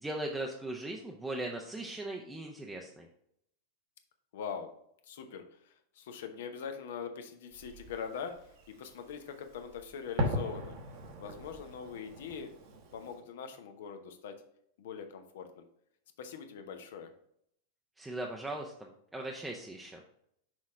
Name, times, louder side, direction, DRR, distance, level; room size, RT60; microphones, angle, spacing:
voice 1, 0.0-3.1 18.0-20.0, right 1 dB, 5° right, 0 dB, 0.7 m, -39 dB
voice 2, 4.3-4.7 5.1-8.3 8.7-10.8 11.2-12.5 12.9-14.3 14.8-15.6 16.2-17.1, left 6 dB, 55° left, 7 dB, 0.8 m, -42 dB
Fireworks, 7.5-13.2, equal, 45° right, 1.1 m, -40 dB
6.2 x 4.1 x 4.8 m, 0.72 s
figure-of-eight pair, 90°, 0 cm